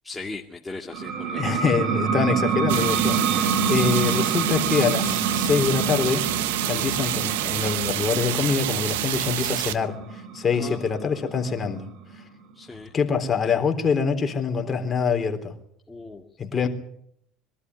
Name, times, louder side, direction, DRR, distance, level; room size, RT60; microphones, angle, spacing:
voice 1, 0.0-1.4 6.7-7.0 10.6-10.8 12.6-12.9 15.9-16.3 16.6-16.7, left 3 dB, 15° left, 0 dB, 2.2 m, -38 dB
sound 1, 0.9-12.2, right 6 dB, 65° right, 2.6 m, -27 dB
voice 2, 1.4-6.2 6.6-11.8 12.9-15.5 16.4-16.7, left 6 dB, 30° left, 5 dB, 3.7 m, -25 dB
sound 2, 2.7-9.7, right 14 dB, 85° right, 1.1 m, -27 dB
23.5 x 13.0 x 9.7 m, 0.72 s
hypercardioid pair, 85°, 0 cm